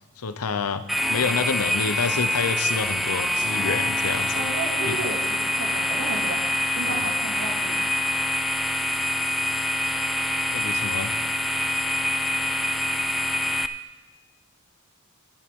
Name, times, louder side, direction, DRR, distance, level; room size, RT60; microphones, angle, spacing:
voice 1, 0.2-0.8 1.1-4.5 4.9-5.0 6.9-7.0 10.5-11.1, left 5 dB, 90° left, 12 dB, 0.7 m, -28 dB
sound 1, 0.9-13.7, left 1 dB, ahead, 0.4 m, -25 dB
voice 2, 4.3-8.1, right 2 dB, 80° right, 0 dB, 2.3 m, -34 dB
14.0 x 11.0 x 3.6 m, 1.2 s
head